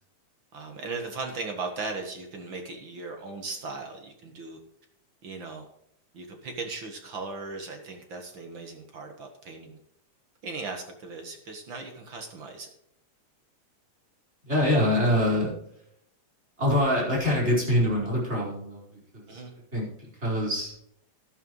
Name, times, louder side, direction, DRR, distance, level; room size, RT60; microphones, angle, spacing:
voice 1, 0.5-4.6 5.2-5.7 6.1-9.8 10.4-12.7 19.3-19.5, right 3 dB, 50° right, 3 dB, 1.8 m, -37 dB
voice 2, 14.4-15.5 16.6-19.4 19.7-20.7, left 1 dB, 20° right, -5 dB, 4.9 m, -25 dB
12.5 x 11.5 x 3.1 m, 0.74 s
omnidirectional pair, 3.4 m